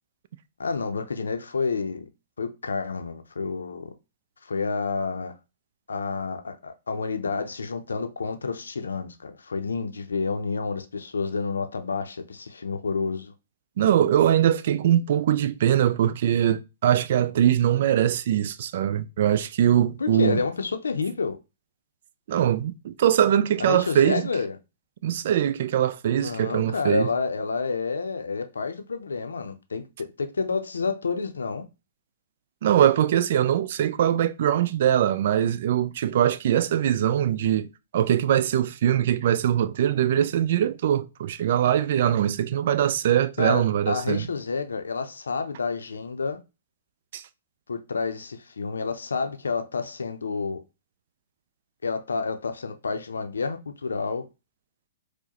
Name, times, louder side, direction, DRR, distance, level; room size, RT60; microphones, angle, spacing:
voice 1, 0.6-2.1 2.4-3.9 4.4-5.3 5.9-13.3 20.0-21.4 23.6-24.6 26.2-31.6 43.4-46.4 47.7-50.6 51.8-54.3, left 4 dB, 85° left, 0.5 m, -29 dB
voice 2, 13.8-20.4 22.3-24.3 25.0-27.1 32.6-37.7 37.9-44.3 47.1-47.2, right 10 dB, 60° right, 0.3 m, -22 dB
4.7 x 2.1 x 2.9 m
hypercardioid pair, 130°, 0 cm